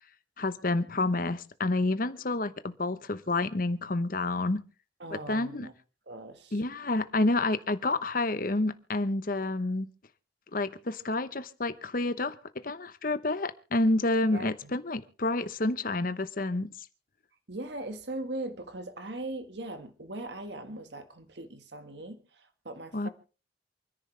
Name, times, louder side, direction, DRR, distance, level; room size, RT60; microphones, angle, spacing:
voice 1, 0.4-4.6 5.1-5.7 6.5-9.9 10.5-16.9 22.9-23.1, left 2 dB, 50° left, 0.9 m, -29 dB
voice 2, 5.0-5.7 6.1-6.6 14.3-14.7 17.5-23.1, right 2 dB, 65° right, 1.6 m, -40 dB
28.0 x 10.5 x 3.3 m
head